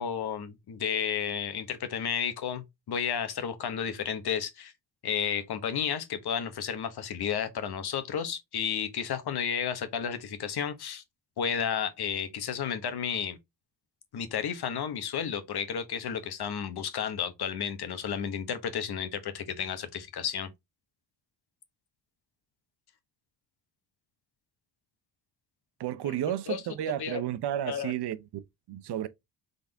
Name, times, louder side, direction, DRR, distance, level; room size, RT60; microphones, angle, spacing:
voice 1, 0.0-4.7 5.0-11.0 11.4-13.4 14.1-20.5 26.0-26.2 26.5-27.2 27.7-27.9, left 7 dB, 65° left, 1.2 m, -32 dB
voice 2, 25.8-29.1, right 11 dB, 65° right, 0.7 m, -32 dB
4.0 x 3.6 x 3.4 m
cardioid pair, 75°, 43 cm